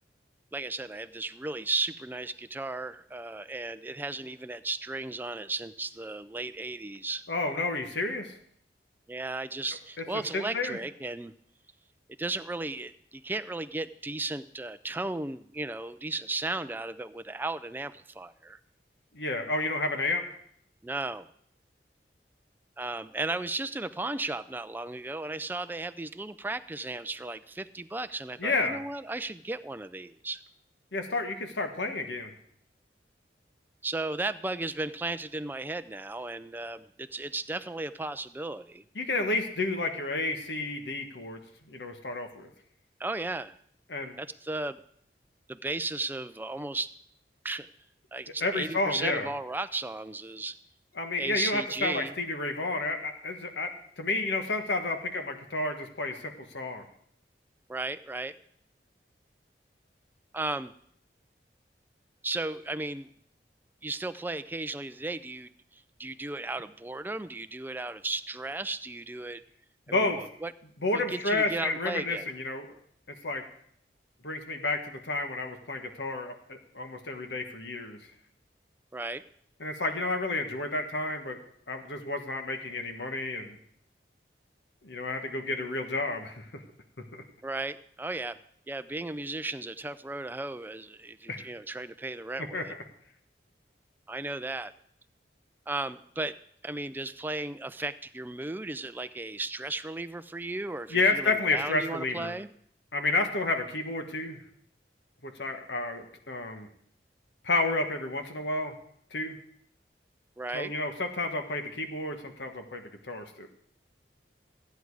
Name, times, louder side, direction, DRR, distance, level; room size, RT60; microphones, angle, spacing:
voice 1, 0.5-7.2 9.1-11.3 12.2-18.6 20.8-21.3 22.8-30.4 33.8-38.8 43.0-43.5 44.2-44.8 45.5-46.9 47.4-47.7 48.1-50.6 51.2-52.1 57.7-58.4 60.3-60.7 62.2-63.1 63.8-69.4 69.9-70.5 70.9-72.3 78.9-79.2 87.4-88.4 88.7-92.7 94.1-94.7 95.7-96.4 96.6-102.5 110.4-110.7, right 2 dB, 10° right, 12 dB, 0.4 m, -35 dB
voice 2, 7.3-8.3 10.1-10.8 19.1-20.2 28.4-28.8 30.9-32.3 38.9-42.5 43.9-44.2 48.4-49.3 51.0-53.7 54.0-56.8 69.9-70.2 70.8-72.7 73.2-73.4 74.2-78.0 79.6-81.4 81.7-83.6 84.8-86.6 91.3-91.5 92.5-92.6 100.9-102.4 102.9-104.4 105.2-106.7 107.4-108.7 109.1-109.4 110.5-113.5, left 2 dB, 85° left, 5 dB, 1.6 m, -31 dB
14.5 x 9.3 x 4.8 m, 0.65 s
head